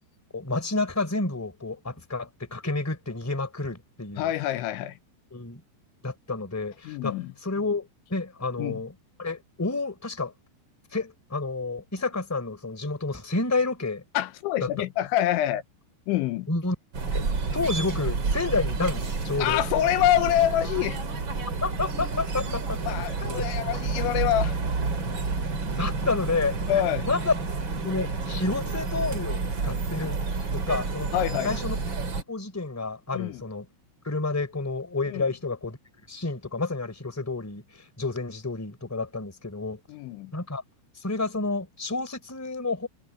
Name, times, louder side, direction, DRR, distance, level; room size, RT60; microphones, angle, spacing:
voice 1, 0.3-4.3 5.3-5.6 6.0-7.1 7.4-8.9 9.2-10.3 10.9-14.0 16.5-16.7 17.1-17.2 17.5-19.6 21.6-22.8 23.2-23.5 25.8-26.8 27.1-27.3 27.8-30.2 30.5-31.1 31.4-31.7 32.3-33.6 34.0-35.8 36.1-37.6 38.0-39.8 40.3-40.6 40.9-42.9, left 3 dB, 5° left, 2.8 m, -30 dB
voice 2, 4.2-5.0 6.8-7.3 8.6-8.8 14.1-15.6 16.1-16.5 19.4-21.0 22.8-24.6 26.7-27.1 31.1-31.5 33.1-33.4 35.1-35.3 39.9-40.3, left 12 dB, 85° left, 3.2 m, -26 dB
sound 1, 16.9-32.2, right 4 dB, 35° right, 2.4 m, -30 dB
omnidirectional pair, 5.5 m